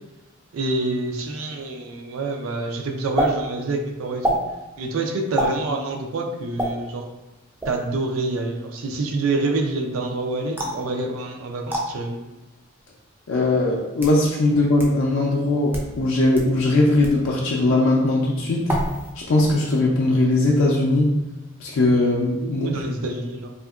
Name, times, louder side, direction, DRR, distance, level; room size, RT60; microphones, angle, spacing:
voice 1, 0.5-4.4 4.8-7.0 7.7-12.2 22.4-23.5, right 2 dB, 85° right, 3 dB, 0.4 m, -27 dB
sound 1, 3.2-3.3 4.2-4.4 5.4-5.6 6.6-6.7 7.6-7.9 10.6-10.8 11.7-11.8 12.8-12.9 13.7-14.2 14.8-14.9 15.6-15.9 16.3-16.5 17.0-17.2 18.7-19.1 19.4-19.8, right 1 dB, 10° right, 0.3 m, -25 dB
voice 2, 13.3-18.7 19.2-21.1 21.6-22.8, left 2 dB, 75° left, -3 dB, 0.4 m, -20 dB
2.7 x 2.4 x 2.3 m, 1.0 s
head